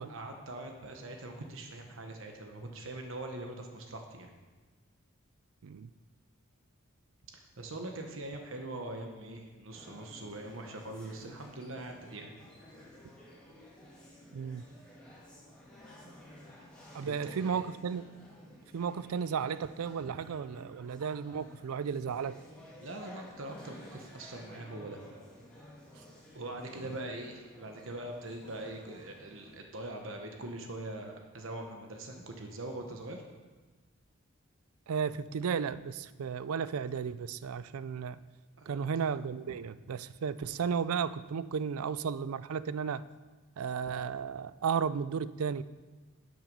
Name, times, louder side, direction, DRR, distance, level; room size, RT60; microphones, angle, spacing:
voice 1, 0.0-4.3 7.3-12.3 17.0-17.6 20.0-20.1 22.8-25.0 26.3-33.2 38.6-38.8, right 2 dB, 65° right, 3 dB, 1.1 m, -42 dB
sound 1, 9.7-29.6, equal, 5° left, 2.4 m, -54 dB
voice 2, 14.3-14.7 16.9-18.1 18.7-22.4 34.9-38.2 38.7-43.0 43.6-45.6, right 6 dB, 85° right, 16 dB, 0.4 m, -34 dB
11.5 x 6.2 x 5.4 m, 1.3 s
head